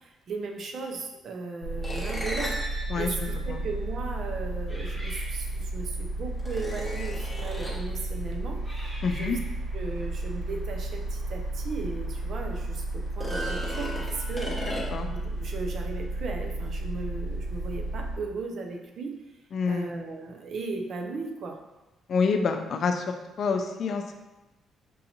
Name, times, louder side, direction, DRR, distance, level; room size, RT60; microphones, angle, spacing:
voice 1, 0.0-8.6 9.1-9.4 9.7-14.6 15.1-19.1 19.7-21.6, right 4 dB, 60° right, 3 dB, 0.6 m, -36 dB
sound 1, 1.6-18.2, right 2 dB, 90° right, 1.0 m, -33 dB
sound 2, 1.8-4.3 5.5-5.6 6.4-7.9 11.2-11.3 11.8-11.9 13.1-15.2, equal, 5° left, 1.0 m, -36 dB
voice 2, 2.9-3.6 9.0-9.4 14.9-15.1 19.5-19.9 22.1-24.1, left 5 dB, 60° left, 5 dB, 0.4 m, -28 dB
sound 3, 4.7-5.9 6.6-6.9 7.6-7.9 8.6-9.8 12.5-12.6 14.1-14.9, equal, 15° right, 1.3 m, -45 dB
5.4 x 2.6 x 2.8 m, 1.0 s
cardioid pair, 90°, 0 cm